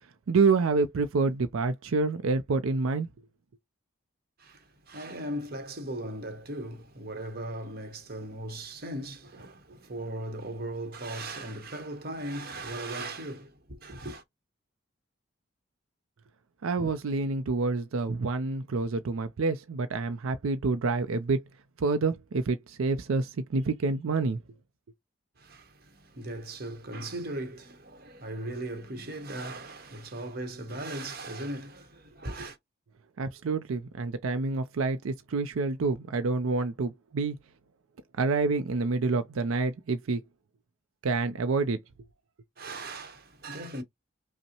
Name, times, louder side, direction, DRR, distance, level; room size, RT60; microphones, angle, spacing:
voice 1, 0.3-3.1 16.6-21.4 21.8-24.4 33.2-37.4 38.2-40.2 41.0-41.8, right 3 dB, 85° right, 0.5 m, -27 dB
voice 2, 4.4-14.2 25.4-32.6 42.6-43.8, right 1 dB, 45° right, 1.0 m, -38 dB
5.3 x 2.1 x 2.9 m
head